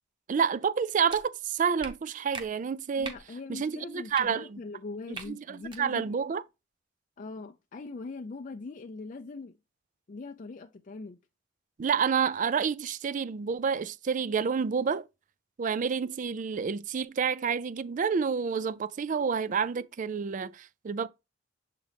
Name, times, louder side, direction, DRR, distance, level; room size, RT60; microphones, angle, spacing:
voice 1, 0.3-3.1 3.5-4.6 5.3-6.4 11.8-15.0 15.6-21.1, right 6 dB, 40° right, 0.4 m, -29 dB
sound 1, 1.1-1.2 1.8-1.9 2.3-2.5 3.0-3.2 4.1-4.2 5.1-5.3 5.6-5.8, right 3 dB, 25° right, 1.0 m, -39 dB
voice 2, 3.0-6.2 7.2-9.6 10.1-11.2, left 3 dB, 40° left, 0.4 m, -41 dB
7.4 x 3.8 x 3.4 m
head